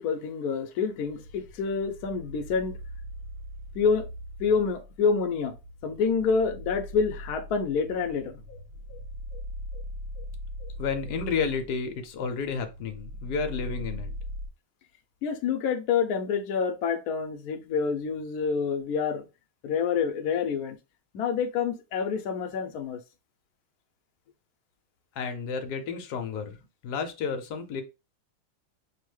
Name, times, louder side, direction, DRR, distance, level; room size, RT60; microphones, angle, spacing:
voice 1, 0.0-2.8 3.7-4.0 4.4-5.5 5.8-8.6 8.9-9.0 9.3-9.4 9.7-9.8 10.2-10.3 10.6-10.7 15.2-19.3 19.6-20.8 21.1-23.0, left 5 dB, 90° left, 0.8 m, -27 dB
sound 1, 0.8-14.5, equal, 75° right, 1.6 m, -40 dB
voice 2, 10.8-14.1 25.2-26.6 26.8-27.8, left 5 dB, 65° left, 1.0 m, -31 dB
5.3 x 2.1 x 3.2 m
omnidirectional pair, 2.3 m